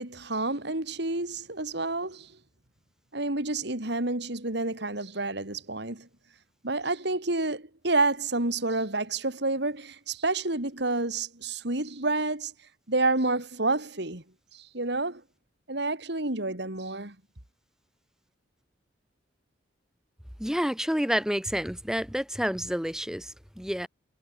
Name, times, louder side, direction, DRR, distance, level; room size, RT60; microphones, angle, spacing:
voice 1, 0.0-2.4 3.1-6.1 6.6-12.5 12.9-14.2 14.5-15.2 15.7-17.2, right 2 dB, 60° right, 3.6 m, -29 dB
voice 2, 20.4-23.9, equal, 5° right, 1.8 m, -29 dB
head